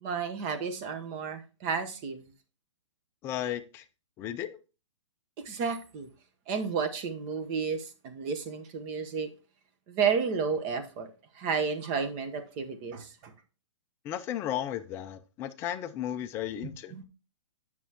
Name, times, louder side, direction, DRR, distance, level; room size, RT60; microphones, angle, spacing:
voice 1, 0.0-2.2 5.4-6.1 6.5-9.3 9.9-11.1 11.3-13.3 16.6-17.0, right 6 dB, 30° right, 1.0 m, -32 dB
voice 2, 3.2-3.8 4.2-4.6 14.0-16.9, left 11 dB, 15° left, 0.4 m, -34 dB
9.2 x 6.1 x 2.9 m
hypercardioid pair, 155°, 16 cm